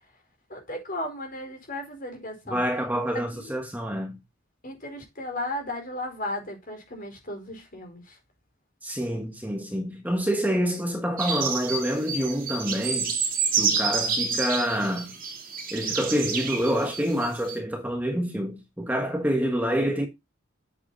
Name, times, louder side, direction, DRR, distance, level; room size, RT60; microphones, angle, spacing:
voice 1, 0.5-2.6 3.3-3.5 4.6-8.2, left 1 dB, 45° left, 4.4 m, -35 dB
voice 2, 2.5-4.2 8.8-13.2 13.6-15.2 15.7-20.1, equal, 10° right, 1.4 m, -27 dB
sound 1, 11.2-17.6, right 5 dB, 45° right, 3.2 m, -28 dB
8.3 x 8.1 x 4.0 m
head